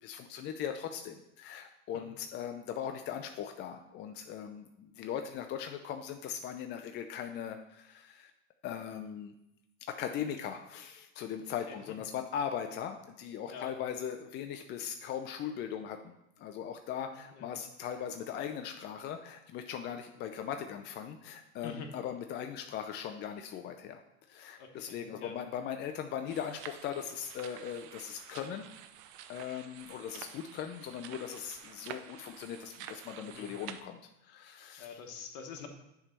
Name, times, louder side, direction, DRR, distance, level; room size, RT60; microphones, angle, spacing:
voice 1, 0.0-8.3 8.6-9.3 9.9-24.0 24.3-28.7 29.3-35.0, left 8 dB, 30° left, 6 dB, 0.4 m, -39 dB
voice 2, 17.0-17.6 21.6-21.9 24.6-25.4 33.2-33.5 34.8-35.7, left 6 dB, 55° left, 4 dB, 1.3 m, -46 dB
sound 1, 26.3-33.8, right 10 dB, 50° right, 0.6 m, -49 dB
7.0 x 3.4 x 5.2 m, 0.86 s
supercardioid pair, 115°, 38 cm